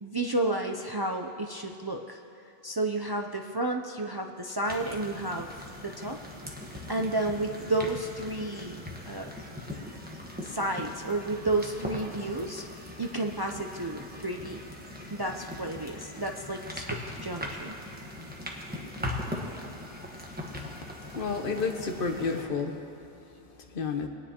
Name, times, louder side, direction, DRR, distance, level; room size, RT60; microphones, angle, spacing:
voice 1, 0.0-2.2 2.6-6.2 6.9-9.3 10.4-12.6 13.0-14.6 15.1-17.8, right 2 dB, 40° right, 3 dB, 0.3 m, -31 dB
sound 1, 4.6-22.4, left 1 dB, 10° right, 1.1 m, -40 dB
voice 2, 21.1-22.7 23.7-24.1, left 4 dB, 60° left, 5 dB, 1.0 m, -30 dB
21.0 x 9.7 x 2.9 m, 2.9 s
omnidirectional pair, 1.1 m